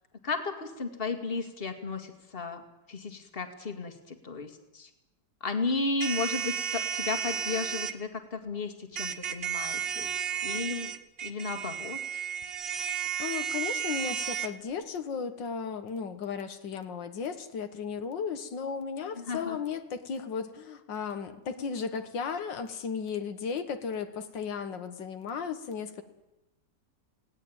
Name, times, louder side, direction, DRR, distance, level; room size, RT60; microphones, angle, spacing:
voice 1, 0.2-2.6 2.9-4.9 5.4-10.9 11.2-12.0 19.2-19.6, left 3 dB, 30° left, 7 dB, 2.3 m, -34 dB
sound 1, 6.0-7.9 9.0-14.5, right 8 dB, 40° right, 1.1 m, -33 dB
voice 2, 13.2-26.0, left 6 dB, 90° left, 8 dB, 2.1 m, -35 dB
19.5 x 17.5 x 8.8 m, 0.97 s
omnidirectional pair, 1.9 m